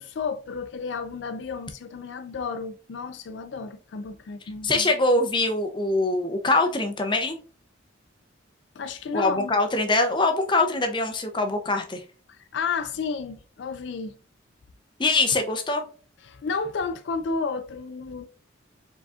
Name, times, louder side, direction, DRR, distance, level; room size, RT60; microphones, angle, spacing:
voice 1, 0.0-4.9 8.8-9.5 12.3-14.2 16.2-18.3, left 4 dB, 65° left, 0.4 m, -32 dB
voice 2, 4.6-7.4 9.1-12.0 15.0-15.8, left 2 dB, 25° left, 0.6 m, -23 dB
4.8 x 3.9 x 2.4 m
head